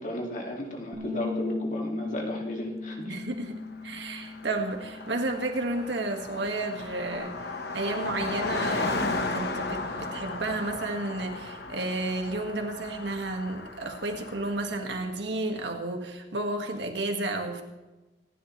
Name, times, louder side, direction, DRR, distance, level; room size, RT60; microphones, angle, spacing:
voice 1, 0.0-3.2, equal, 40° left, 0 dB, 2.4 m, -34 dB
Bass guitar, 0.9-7.2, left 3 dB, 40° right, 4.4 m, -38 dB
voice 2, 3.0-3.6 3.8-7.5 7.7-17.6, right 2 dB, 70° right, 3 dB, 1.9 m, -32 dB
Car passing by, 3.6-3.7 3.9-14.9, left 3 dB, 55° left, 1.3 m, -35 dB
26.0 x 11.0 x 3.3 m, 1.1 s
head